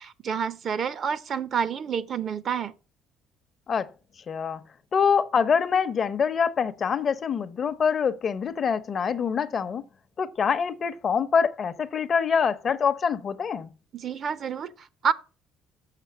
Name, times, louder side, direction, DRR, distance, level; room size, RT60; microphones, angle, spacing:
voice 1, 0.0-2.7 13.9-15.1, right 7 dB, 50° right, 0.8 m, -29 dB
voice 2, 4.3-4.6 4.9-9.9 10.2-13.7, left 6 dB, 40° left, 0.8 m, -25 dB
6.8 x 6.5 x 7.3 m
cardioid pair, 95°, 0 cm